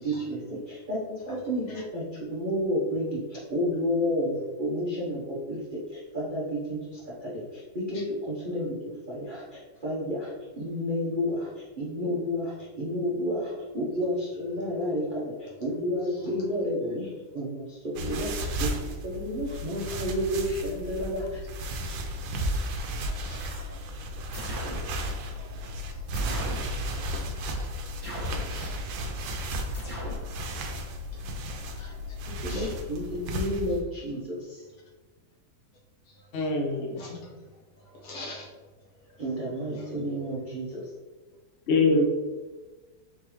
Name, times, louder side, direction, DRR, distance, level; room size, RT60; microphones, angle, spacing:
voice 1, 0.0-5.6 5.9-11.5 11.8-18.7 19.0-21.4 32.3-34.6 39.2-40.8, equal, 50° right, -8 dB, 0.6 m, -31 dB
sound 1, 17.9-33.8, equal, 75° right, 1.3 m, -34 dB
voice 2, 23.0-23.7 25.4-25.6 26.1-26.8 28.4-28.8 31.8-32.2 32.5-32.7 37.0-37.4 38.0-38.5 39.8-40.1, left 2 dB, 85° left, -3 dB, 2.0 m, -45 dB
sound 2, 24.3-24.9 26.1-26.7 28.0-28.5 29.7-30.3, equal, 15° right, 1.1 m, -37 dB
voice 3, 36.3-37.0 41.7-42.0, left 3 dB, 70° left, 0 dB, 0.6 m, -23 dB
4.4 x 3.7 x 3.0 m, 1.3 s
omnidirectional pair, 2.2 m